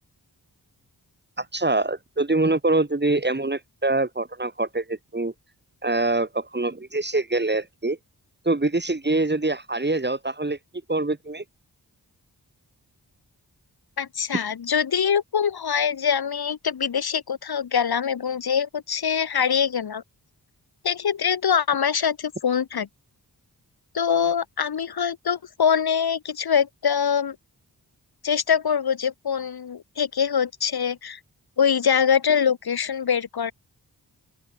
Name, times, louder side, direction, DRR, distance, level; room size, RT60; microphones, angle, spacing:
voice 1, 1.4-5.3 5.8-8.0 8.4-10.6 10.9-11.4, right 2 dB, 25° right, 4.3 m, -24 dB
voice 2, 14.0-20.0 20.8-22.9 23.9-27.3 28.2-31.2 31.6-33.5, left 7 dB, 70° left, 1.4 m, -23 dB
open air
cardioid pair, 70°, 39 cm